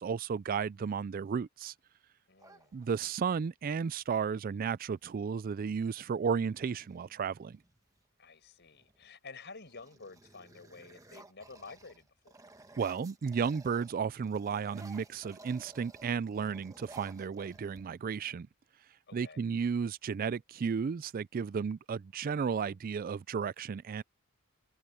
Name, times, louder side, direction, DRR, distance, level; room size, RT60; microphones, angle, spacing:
voice 1, 0.0-1.7 2.7-7.6 12.8-18.5 19.1-24.0, right 6 dB, 40° right, 0.3 m, -33 dB
voice 2, 2.3-2.8 8.2-12.3 19.1-19.4, left 4 dB, 50° left, 6.3 m, -51 dB
sound 1, 2.4-3.3 5.0-5.1 5.5-6.0 6.5-8.0 8.7-9.1 9.4-14.0 14.2-18.2, right 2 dB, 15° right, 1.3 m, -56 dB
head